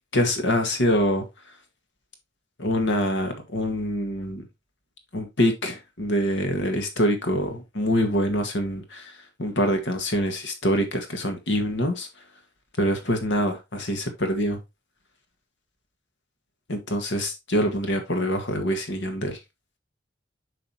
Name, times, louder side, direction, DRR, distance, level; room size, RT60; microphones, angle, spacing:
voice 1, 0.1-1.2 2.6-4.4 5.1-9.1 9.4-12.1 12.8-14.6 16.7-19.4, equal, 80° left, 1.8 m, -25 dB
8.0 x 5.1 x 2.9 m
head